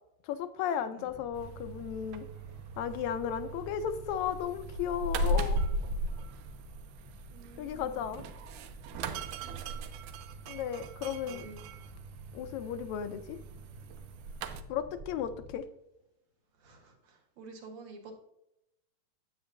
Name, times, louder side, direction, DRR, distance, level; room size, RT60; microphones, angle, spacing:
voice 1, 0.2-2.3 2.8-5.6 7.6-8.2 10.5-11.5 12.3-13.4 14.7-15.6, left 9 dB, 80° left, 9 dB, 1.9 m, -34 dB
voice 2, 0.9-1.2 7.3-8.3 9.4-9.7 11.3-11.6 16.5-18.2, right 3 dB, 65° right, 2 dB, 2.4 m, -51 dB
sound 1, 1.0-15.6, right 1 dB, 40° right, 1.3 m, -51 dB
sound 2, 1.3-14.6, right 1 dB, 90° right, 2.1 m, -38 dB
9.5 x 8.0 x 2.6 m, 0.83 s
omnidirectional pair, 3.4 m